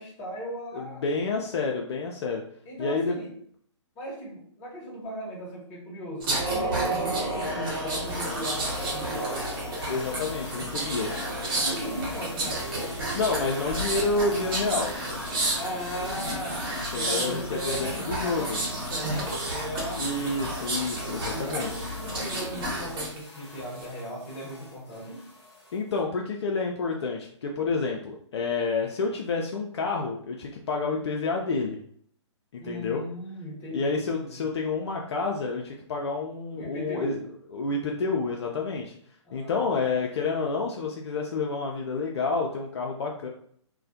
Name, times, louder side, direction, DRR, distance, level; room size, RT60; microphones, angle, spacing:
voice 1, 0.0-1.0 2.7-3.3 3.9-9.5 11.6-12.9 15.6-20.0 21.0-25.3 32.6-34.4 36.6-37.3 39.2-40.0, equal, 25° left, -4 dB, 0.9 m, -37 dB
voice 2, 0.7-2.4 2.8-3.2 9.9-11.1 13.1-14.9 16.9-18.6 20.0-21.7 25.7-31.8 32.5-33.0 33.7-37.2 37.5-38.9 39.3-43.3, left 3 dB, 60° left, 0 dB, 0.4 m, -29 dB
sound 1, 6.2-23.2 23.6-23.8, right 1 dB, 45° right, 0.9 m, -31 dB
sound 2, 8.0-26.0, left 1 dB, ahead, 1.2 m, -43 dB
2.3 x 2.1 x 2.6 m, 0.63 s
figure-of-eight pair, 130°, 16 cm